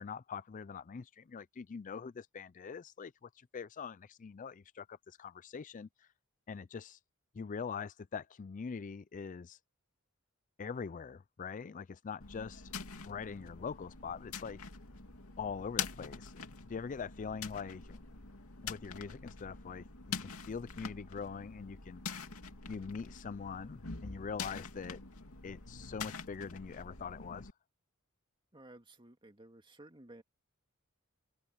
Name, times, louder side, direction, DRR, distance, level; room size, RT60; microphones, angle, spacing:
voice 1, 0.0-6.1 6.5-7.0 7.3-9.6 10.6-12.7 13.0-14.6 15.4-16.4 16.7-18.0 18.6-22.0 22.7-25.0 25.4-27.5, left 5 dB, 35° left, 0.4 m, -43 dB
sound 1, 12.2-27.5, left 6 dB, 85° left, 2.5 m, -45 dB
voice 2, 28.5-30.2, right 1 dB, 25° right, 2.1 m, -55 dB
open air
head